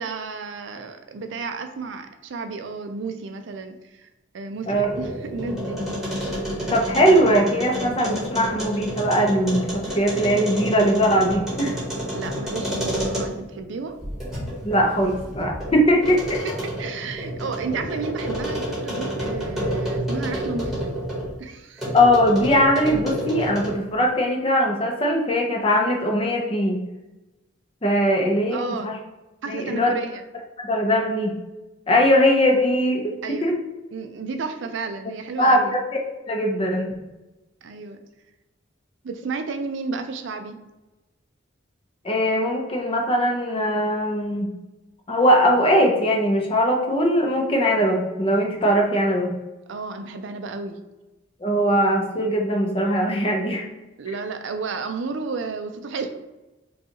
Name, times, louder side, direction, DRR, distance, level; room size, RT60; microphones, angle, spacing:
voice 1, 0.0-4.1 4.3-5.8 12.1-14.0 16.4-21.0 21.4-21.9 28.5-28.9 29.4-30.2 33.2-33.5 33.9-35.7 37.6-38.0 39.0-40.6 49.7-50.8 54.0-56.2, right 4 dB, 65° right, 7 dB, 0.4 m, -32 dB
sound 1, 4.6-13.5 14.0-21.3 21.8-23.9, equal, ahead, 1.2 m, -29 dB
voice 2, 6.6-11.8 14.6-16.2 21.9-26.8 27.8-29.0 29.5-29.9 30.6-31.4 31.9-33.6 35.4-36.0 36.3-36.9 42.0-44.5 45.1-49.3 51.4-53.7, equal, 25° left, 1 dB, 0.6 m, -20 dB
5.3 x 2.3 x 2.9 m, 1.1 s
head